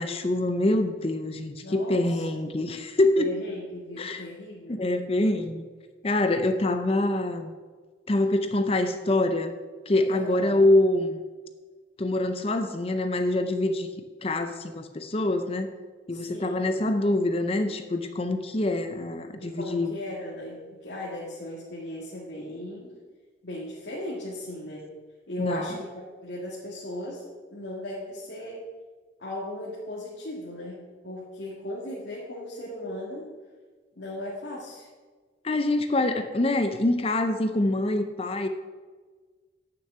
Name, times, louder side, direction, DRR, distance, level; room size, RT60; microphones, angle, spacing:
voice 1, 0.0-3.3 4.0-4.3 4.7-5.7 6.0-7.5 8.1-9.6 9.9-11.2 12.0-13.9 14.2-15.7 16.1-19.9 25.4-25.8 35.4-38.5, left 2 dB, 30° left, 8 dB, 0.6 m, -25 dB
voice 2, 1.6-2.3 3.2-4.8 10.1-10.6 16.1-16.7 19.4-22.9 23.4-24.9 25.3-25.9 26.2-27.3 27.5-28.6 29.2-33.3 34.0-34.9, left 1 dB, 70° left, -5 dB, 1.9 m, -37 dB
9.4 x 6.8 x 6.8 m, 1.4 s
head